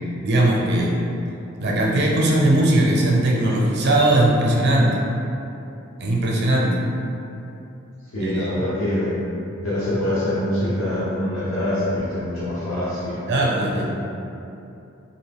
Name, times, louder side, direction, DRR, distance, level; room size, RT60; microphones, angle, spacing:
voice 1, 0.2-1.0 1.6-5.0 6.0-6.7 8.2-8.5 13.3-13.8, right 1 dB, 55° right, -2 dB, 0.6 m, -19 dB
voice 2, 8.1-9.2 9.6-13.2 13.7-13.8, left 1 dB, 85° left, -11 dB, 0.8 m, -24 dB
2.9 x 2.7 x 3.4 m, 2.8 s
head